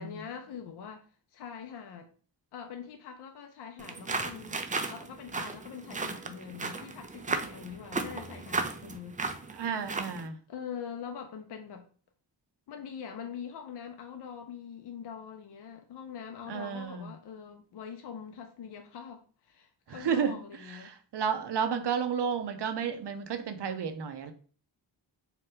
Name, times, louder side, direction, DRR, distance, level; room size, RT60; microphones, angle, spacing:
voice 1, 0.0-2.1 2.5-4.6 4.9-9.6 10.5-11.9 12.7-20.9, left 7 dB, 60° left, 0.5 m, -43 dB
sound 1, 3.8-10.3, right 3 dB, 20° right, 0.3 m, -35 dB
voice 2, 9.5-10.4 16.5-17.1 19.9-20.4 20.6-24.3, right 7 dB, 60° right, 0.6 m, -32 dB
2.8 x 2.2 x 3.4 m
cardioid pair, 45°, 47 cm